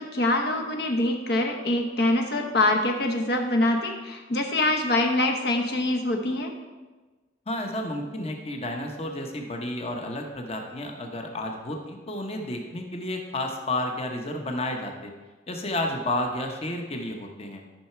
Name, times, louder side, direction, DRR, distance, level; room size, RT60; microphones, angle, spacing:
voice 1, 0.0-6.5, left 1 dB, 60° left, 3 dB, 0.9 m, -24 dB
voice 2, 7.5-15.1 15.5-17.6, left 1 dB, 35° left, 3 dB, 1.0 m, -31 dB
12.0 x 5.8 x 4.5 m, 1.3 s
head